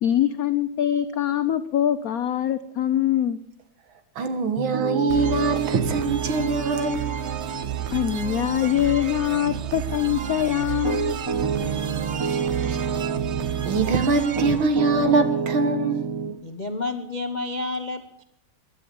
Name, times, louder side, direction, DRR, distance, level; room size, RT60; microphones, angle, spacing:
voice 1, 0.0-3.4 7.9-11.2, left 11 dB, 90° left, 12 dB, 0.7 m, -23 dB
voice 2, 4.2-7.1 12.1-13.0 13.7-16.0, right 3 dB, 70° right, 9 dB, 2.3 m, -23 dB
Piano, 4.6-13.9 14.4-16.4, right 6 dB, 20° right, 0.6 m, -30 dB
sound 1, 5.1-15.7, right 9 dB, 85° right, 0.6 m, -32 dB
voice 3, 16.4-18.2, left 3 dB, 70° left, 8 dB, 0.4 m, -30 dB
16.0 x 11.0 x 7.0 m, 0.80 s
omnidirectional pair, 2.4 m